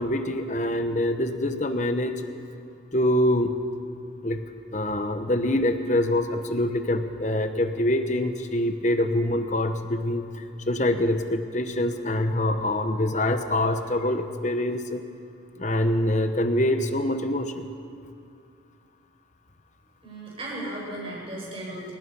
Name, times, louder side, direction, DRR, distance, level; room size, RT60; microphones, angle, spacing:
voice 1, 0.0-2.2 2.9-3.6 4.2-15.0 15.6-17.7, left 1 dB, 40° left, 8 dB, 1.1 m, -25 dB
voice 2, 20.0-21.9, right 1 dB, 30° right, -4 dB, 7.0 m, -35 dB
25.0 x 18.5 x 5.6 m, 2.4 s
head